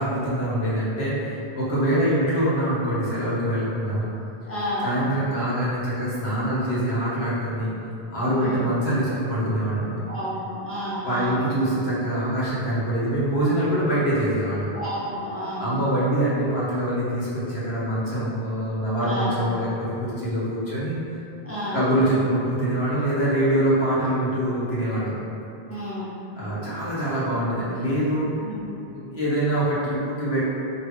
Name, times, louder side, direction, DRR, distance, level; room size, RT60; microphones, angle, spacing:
voice 1, 0.0-4.1 4.8-7.7 8.1-10.0 11.0-14.7 15.6-21.0 21.7-25.1 26.3-28.3 28.9-30.4, right 1 dB, 80° left, -9 dB, 1.4 m, -24 dB
voice 2, 4.5-4.9 8.4-8.7 10.1-11.4 14.7-15.8 19.0-19.4 21.4-21.8 25.7-26.2 28.4-28.6, equal, 15° left, -9 dB, 0.8 m, -31 dB
4.2 x 2.6 x 3.5 m, 2.8 s
omnidirectional pair, 1.0 m